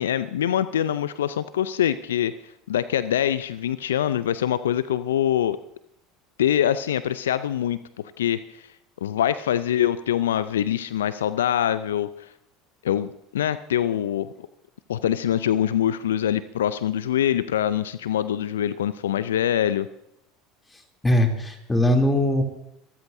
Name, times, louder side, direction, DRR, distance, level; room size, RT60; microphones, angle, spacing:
voice 1, 0.0-2.3 2.7-5.6 6.4-8.7 9.0-12.3 12.8-14.3 14.9-19.9, left 10 dB, 80° left, 15 dB, 0.4 m, -24 dB
voice 2, 21.0-22.4, left 1 dB, 15° left, 3 dB, 3.0 m, -20 dB
26.5 x 13.5 x 2.7 m, 0.76 s
hypercardioid pair, 75°, 0 cm